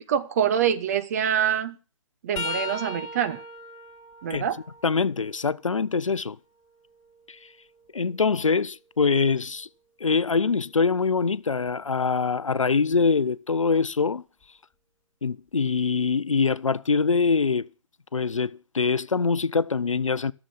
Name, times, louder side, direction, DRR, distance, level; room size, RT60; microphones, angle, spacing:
voice 1, 0.0-1.8 2.2-3.4 4.2-4.6, right 9 dB, 30° right, 1.2 m, -25 dB
sound 1, 2.4-6.1 6.6-8.6 11.5-11.7 12.9-13.1 14.4-14.5, left 3 dB, 15° left, 2.6 m, -39 dB
voice 2, 4.8-6.4 7.3-7.4 7.9-9.7 10.0-14.2 15.2-17.7 18.1-20.3, left 5 dB, 70° left, 0.6 m, -24 dB
13.5 x 7.1 x 9.2 m
figure-of-eight pair, 140°, 17 cm